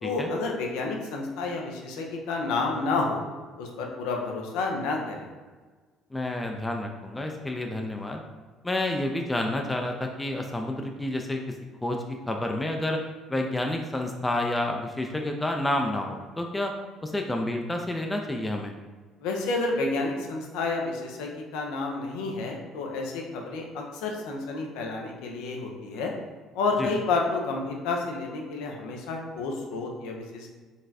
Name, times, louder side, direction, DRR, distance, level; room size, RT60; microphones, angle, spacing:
voice 1, 0.0-3.2 3.6-5.3 19.2-26.1 26.5-30.5, left 3 dB, 75° left, 1 dB, 0.5 m, -30 dB
voice 2, 6.1-8.2 8.6-11.4 11.8-16.7 17.0-18.7 26.8-26.9, left 1 dB, 15° left, 2 dB, 0.4 m, -29 dB
4.0 x 2.3 x 2.7 m, 1.4 s
hypercardioid pair, 60°, 0 cm